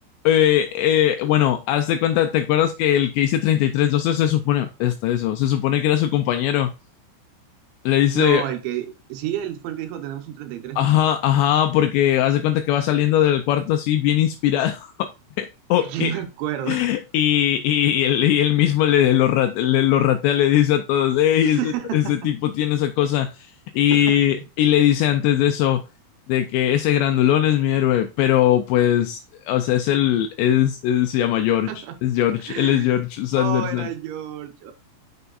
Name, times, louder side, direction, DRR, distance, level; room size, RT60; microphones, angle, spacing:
voice 1, 0.2-6.7 7.9-8.4 10.8-15.1 15.4-16.1 16.7-25.8 26.3-29.2 29.5-31.7 32.0-33.9, left 11 dB, 85° left, 2.5 m, -20 dB
voice 2, 8.1-11.0 15.8-16.8 21.4-22.3 23.9-24.2 31.7-32.0 32.5-33.0 33.3-34.7, right 11 dB, 75° right, 3.2 m, -30 dB
7.9 x 6.9 x 2.4 m
omnidirectional pair, 5.6 m